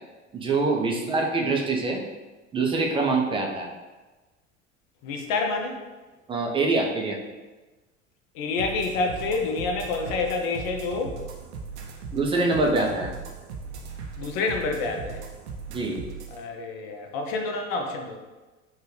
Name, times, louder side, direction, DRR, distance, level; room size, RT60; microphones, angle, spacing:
voice 1, 0.3-2.0 2.5-3.7 6.3-7.2 12.1-13.1 15.7-16.0, right 3 dB, 15° right, 1 dB, 0.4 m, -24 dB
voice 2, 5.0-5.8 8.3-11.2 14.2-15.2 16.3-18.2, left 3 dB, 50° left, 4 dB, 0.6 m, -28 dB
sound 1, 8.6-16.4, right 5 dB, 65° right, 0.5 m, -38 dB
3.4 x 2.2 x 3.1 m, 1.2 s
figure-of-eight pair, 70°, 37 cm